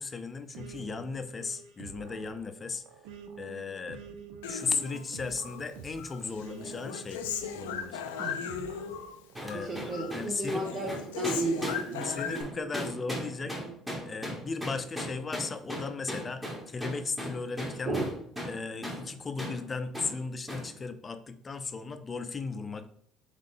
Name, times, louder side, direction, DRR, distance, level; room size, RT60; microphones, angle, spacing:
voice 1, 0.0-2.8 3.4-4.0 4.4-7.2 7.5-8.4 9.4-10.8 12.0-13.6 14.1-18.0 18.4-22.9, left 4 dB, 30° left, 9 dB, 0.5 m, -36 dB
sound 1, 0.5-11.6 12.2-13.8, right 6 dB, 75° right, 0.5 m, -48 dB
Human voice, 4.4-5.6 6.0-9.2 9.4-10.2 10.4-12.4, left 8 dB, 85° left, 0.4 m, -38 dB
voice 2, 8.2-8.7 9.5-12.1 17.9-18.0, right 2 dB, 50° right, -2 dB, 0.8 m, -33 dB
sound 2, 9.3-18.6 18.8-19.0 19.4-19.6 19.9-20.1 20.5-20.7, equal, 10° right, 1.5 m, -37 dB
3.7 x 3.2 x 3.8 m, 0.63 s
hypercardioid pair, 70°, 0 cm